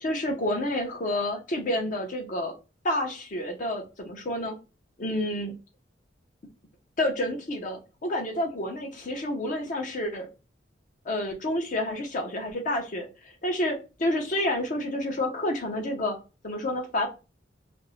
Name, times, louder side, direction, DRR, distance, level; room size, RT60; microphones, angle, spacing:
voice 1, 0.0-2.5 2.8-4.6 5.0-5.5 7.0-10.3 11.1-13.1 13.4-16.2 16.4-17.1, left 1 dB, 45° left, 3 dB, 0.6 m, -29 dB
2.5 x 2.0 x 2.9 m, 0.30 s
head